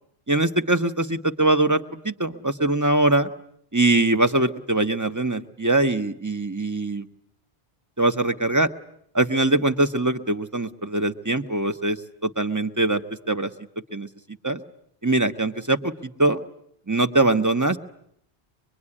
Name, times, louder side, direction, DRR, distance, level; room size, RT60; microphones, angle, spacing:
voice 1, 0.3-3.3 3.7-7.1 8.0-8.7 9.1-13.5 13.9-14.1 14.4-14.6 15.0-16.4 16.9-17.8, right 2 dB, 15° right, 7 dB, 1.1 m, -22 dB
24.5 x 23.0 x 9.8 m, 0.70 s
omnidirectional pair, 1.1 m